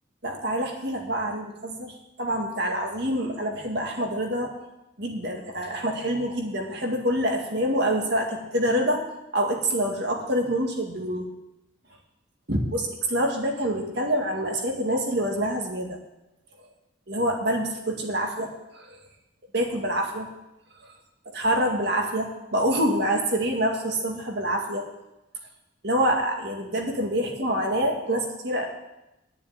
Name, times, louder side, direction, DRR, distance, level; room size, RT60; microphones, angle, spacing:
voice 1, 0.2-4.5 5.0-9.0 9.3-11.3 12.5-16.0 17.1-19.0 19.5-20.3 20.8-20.9 21.3-24.9 25.8-28.7, right 1 dB, 55° right, 1 dB, 2.1 m, -26 dB
10.0 x 7.2 x 8.8 m, 0.93 s
head